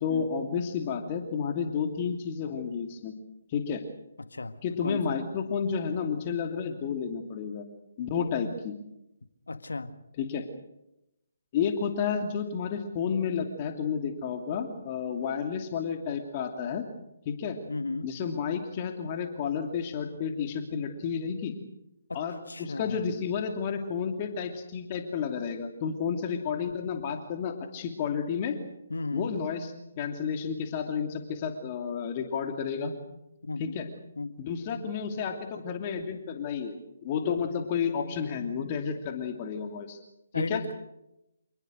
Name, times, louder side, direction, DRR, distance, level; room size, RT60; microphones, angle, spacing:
voice 1, 0.0-3.1 3.5-3.8 4.6-7.6 8.0-8.8 10.2-10.5 11.5-16.8 17.2-17.6 18.0-21.5 22.1-28.6 29.1-29.7 30.0-32.9 33.6-33.9 34.4-36.7 37.0-40.0 40.3-40.6, left 6 dB, 35° left, 5 dB, 2.7 m, -31 dB
voice 2, 4.2-5.2 9.5-10.0 17.7-18.1 22.1-23.1 28.9-29.3 33.4-33.8 34.2-34.3 40.3-40.7, left 3 dB, 75° left, 11 dB, 1.8 m, -35 dB
27.5 x 20.0 x 6.5 m, 0.86 s
figure-of-eight pair, 145°, 0 cm